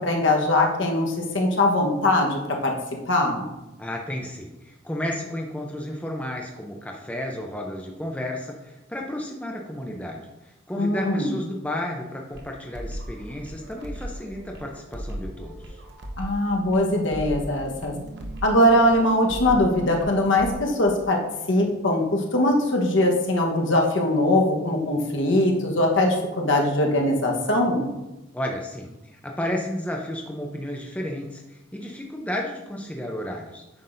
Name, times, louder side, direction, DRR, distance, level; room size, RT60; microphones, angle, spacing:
voice 1, 0.0-2.7 3.1-3.5 10.8-11.3 16.2-17.9 18.4-21.2 21.5-27.9, left 1 dB, 65° left, 0 dB, 1.2 m, -21 dB
voice 2, 3.8-15.8 28.3-33.8, left 1 dB, 5° left, 0 dB, 0.6 m, -32 dB
sound 1, 12.3-20.5, right 1 dB, 55° right, 1.0 m, -37 dB
9.2 x 6.0 x 2.6 m, 1.0 s
head